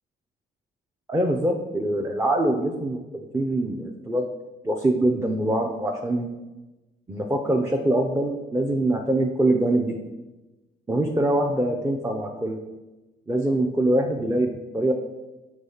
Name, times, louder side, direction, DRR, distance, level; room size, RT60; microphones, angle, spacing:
voice 1, 1.1-4.3 4.6-6.3 7.1-10.0 10.9-12.6 13.3-14.5 14.7-14.9, right 1 dB, 15° right, 1 dB, 0.6 m, -24 dB
6.1 x 3.2 x 5.6 m, 1.1 s
cardioid pair, 90°, 20 cm